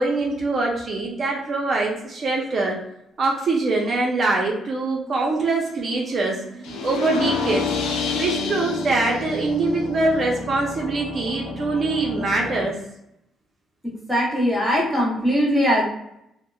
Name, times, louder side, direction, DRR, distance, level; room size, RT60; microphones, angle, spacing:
voice 1, 0.0-2.8 3.2-7.7 8.1-12.8, right 3 dB, 50° right, -1 dB, 0.5 m, -23 dB
sound 1, 6.6-12.6, left 4 dB, 90° left, 0.4 m, -29 dB
voice 2, 13.8-15.8, equal, 5° left, -4 dB, 0.9 m, -21 dB
2.8 x 2.1 x 2.2 m, 0.79 s
cardioid pair, 90°, 0 cm